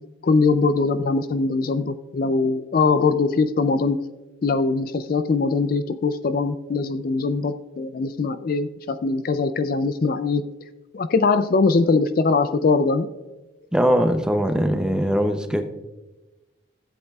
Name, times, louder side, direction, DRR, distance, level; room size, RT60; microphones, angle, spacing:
voice 1, 0.2-4.1 4.4-10.4 10.9-13.1, left 4 dB, 45° left, 12 dB, 0.3 m, -21 dB
voice 2, 13.7-15.6, equal, 5° right, 6 dB, 0.5 m, -21 dB
15.0 x 7.9 x 2.3 m, 1.1 s
head